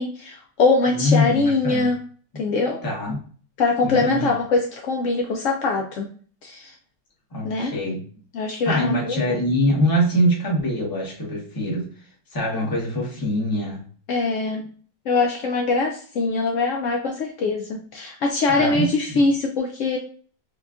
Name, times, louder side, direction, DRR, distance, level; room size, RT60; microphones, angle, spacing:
voice 1, 0.0-2.0 2.4-2.8 3.6-6.1 6.4-6.7 7.4-7.7 8.3-9.4 14.1-14.6 15.1-20.0, left 3 dB, 90° left, 2 dB, 0.6 m, -22 dB
voice 2, 0.9-1.9 2.8-3.2 3.8-4.3 7.3-8.0 8.6-11.9 12.3-13.8 18.5-19.2, equal, 20° left, -2 dB, 0.6 m, -23 dB
5.0 x 2.3 x 2.4 m, 0.43 s
omnidirectional pair, 1.9 m